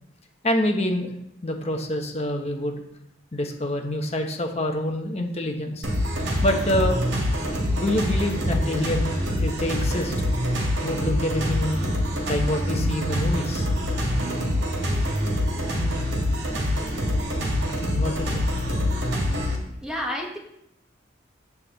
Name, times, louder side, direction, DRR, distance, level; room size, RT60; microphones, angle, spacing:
voice 1, 0.4-1.1 1.4-2.8 3.3-5.8 6.4-7.0 7.8-9.1 9.4-10.1 10.8-11.8 12.3-13.7 17.8-18.4, left 1 dB, 35° left, 3 dB, 1.0 m, -26 dB
sound 1, 5.8-19.6, equal, 65° right, 2.2 m, -25 dB
voice 2, 19.8-20.4, equal, 5° right, -1 dB, 1.0 m, -29 dB
8.5 x 8.3 x 4.0 m, 0.78 s
head